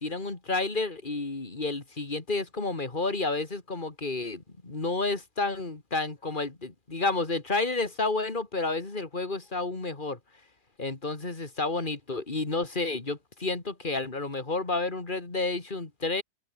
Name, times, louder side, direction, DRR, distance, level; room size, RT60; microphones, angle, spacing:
voice 1, 0.0-10.2 10.8-16.2, left 3 dB, 25° left, 2.9 m, -30 dB
open air
omnidirectional pair, 1.9 m